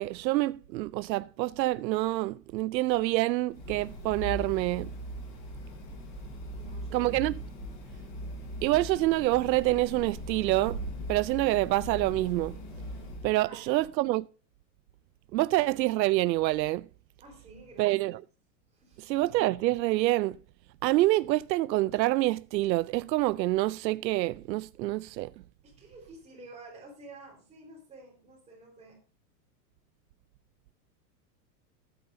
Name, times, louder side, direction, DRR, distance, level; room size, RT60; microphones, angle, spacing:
voice 1, 0.0-4.9 6.9-7.3 8.6-10.8 11.1-12.6 13.2-14.3 15.3-16.9 17.8-18.2 19.0-20.4 20.8-25.3, right 18 dB, 85° right, 0.6 m, -27 dB
sound 1, 3.5-13.3, equal, 10° left, 0.5 m, -40 dB
voice 2, 6.5-7.1 13.4-13.9 17.2-17.9 18.7-19.2 25.6-29.0, right 2 dB, 15° right, 4.1 m, -50 dB
20.0 x 9.2 x 2.7 m
supercardioid pair, 175°, 50 cm